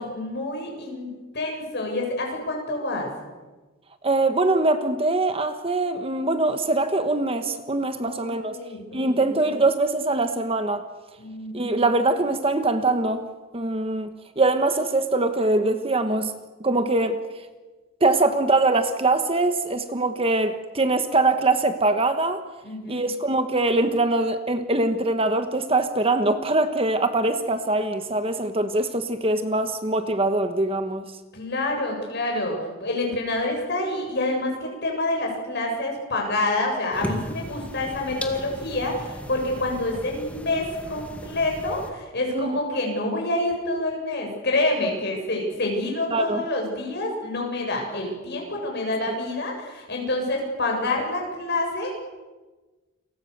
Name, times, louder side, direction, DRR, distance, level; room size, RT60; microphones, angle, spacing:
voice 1, 0.0-3.1 8.0-9.4 11.2-11.8 22.6-23.0 31.3-51.9, left 2 dB, 50° left, 1 dB, 7.7 m, -27 dB
voice 2, 4.0-8.6 8.9-10.9 11.5-13.3 13.5-16.3 16.6-17.2 18.0-22.4 22.9-31.1 42.3-42.6 46.1-46.4, right 2 dB, 25° right, 8 dB, 1.3 m, -23 dB
sound 1, 36.9-41.9, equal, 5° left, 2.1 m, -36 dB
30.0 x 23.5 x 6.8 m, 1.2 s
head